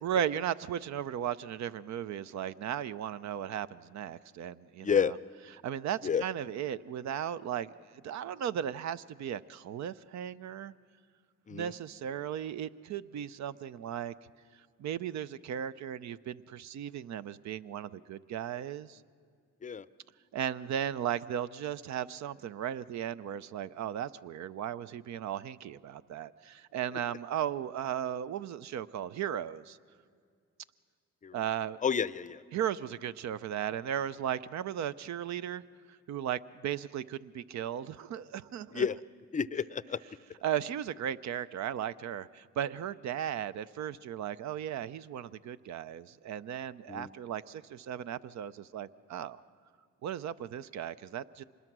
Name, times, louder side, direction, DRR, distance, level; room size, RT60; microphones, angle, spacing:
voice 1, 0.0-5.2 5.5-7.7 8.0-10.7 11.5-14.1 14.8-19.0 20.3-29.8 31.3-31.8 32.5-35.6 36.1-38.9 40.4-49.4 50.0-51.4, right 10 dB, 65° right, 16 dB, 0.6 m, -36 dB
voice 2, 4.8-5.1 6.0-6.2 11.5-11.7 19.6-19.8 31.2-31.3 31.8-32.4 38.7-39.0 39.3-40.0 46.9-47.1, left 7 dB, 25° left, 17 dB, 0.5 m, -30 dB
25.5 x 20.5 x 6.1 m, 2.2 s
cardioid pair, 90°, 30 cm